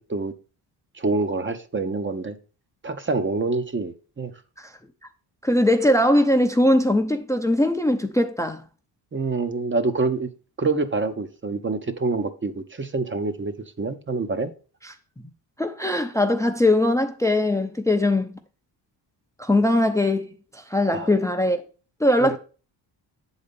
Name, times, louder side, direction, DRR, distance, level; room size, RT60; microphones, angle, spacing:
voice 1, 0.9-2.4 2.8-4.3 9.1-10.3 10.6-14.5 20.9-21.1 22.2-22.4, right 3 dB, 25° right, 0.8 m, -26 dB
voice 2, 5.4-8.6 14.8-14.9 15.6-18.4 19.4-21.6 22.0-22.4, left 1 dB, 5° left, 0.6 m, -21 dB
7.6 x 4.0 x 5.2 m
cardioid pair, 80°, 45 cm